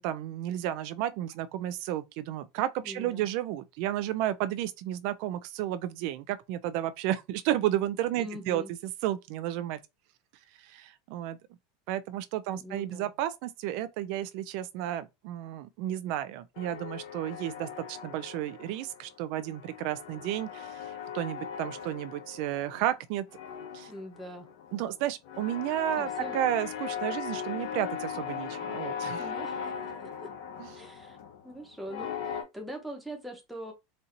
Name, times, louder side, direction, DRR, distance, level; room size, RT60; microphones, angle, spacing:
voice 1, 0.0-9.8 10.6-11.4 11.9-23.2 23.7-23.9 24.7-29.2 30.6-30.7, right 12 dB, 50° right, 0.4 m, -32 dB
voice 2, 2.8-3.3 8.2-8.7 12.5-13.1 23.9-24.5 26.0-26.4 29.2-29.7 30.2-30.3 30.7-31.2 31.4-33.7, equal, ahead, 0.8 m, -42 dB
sound 1, 16.6-19.1 19.4-23.0 23.3-32.4, left 7 dB, 55° left, 0.9 m, -38 dB
4.2 x 2.7 x 2.6 m
supercardioid pair, 170°, 0 cm